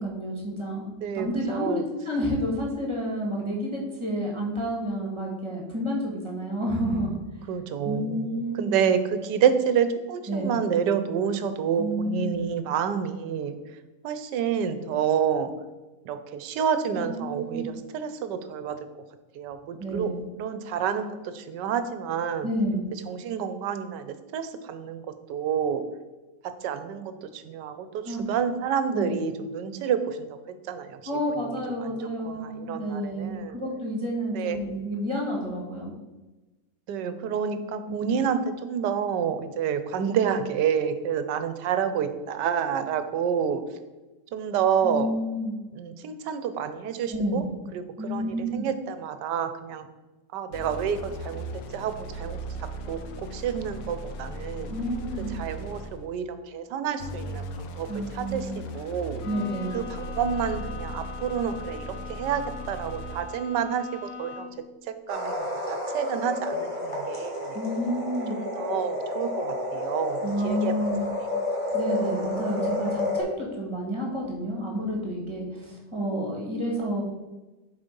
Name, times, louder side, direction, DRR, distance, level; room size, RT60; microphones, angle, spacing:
voice 1, 0.0-0.9 1.1-7.1 7.8-8.8 10.3-10.6 11.8-12.4 16.9-17.7 19.8-20.2 22.4-22.9 28.0-28.3 28.9-29.2 31.0-35.9 37.9-38.1 44.8-45.6 47.1-47.5 48.0-48.7 54.7-55.3 57.9-58.6 59.2-59.8 67.5-68.4 70.2-71.1 71.7-77.0, equal, 15° right, -2 dB, 1.5 m, -30 dB
voice 2, 1.0-1.8 7.5-8.3 8.6-13.6 14.0-15.5 16.1-18.8 19.3-20.1 20.4-22.5 23.1-25.0 25.3-25.8 26.6-31.0 31.4-33.6 34.3-34.6 36.9-43.6 44.3-45.1 45.7-47.4 47.7-47.8 48.1-49.9 50.3-54.7 55.3-59.2 59.7-64.5 64.9-67.6 68.3-70.7, right 7 dB, 75° right, 10 dB, 1.3 m, -29 dB
sound 1, 50.5-56.1 57.0-63.4, equal, 90° left, 1.4 m, -38 dB
Bowed string instrument, 59.2-64.7, left 5 dB, 65° left, 1.5 m, -41 dB
sound 2, 65.1-73.2, left 1 dB, 20° left, 1.8 m, -30 dB
7.1 x 4.2 x 5.3 m, 1.1 s
omnidirectional pair, 1.9 m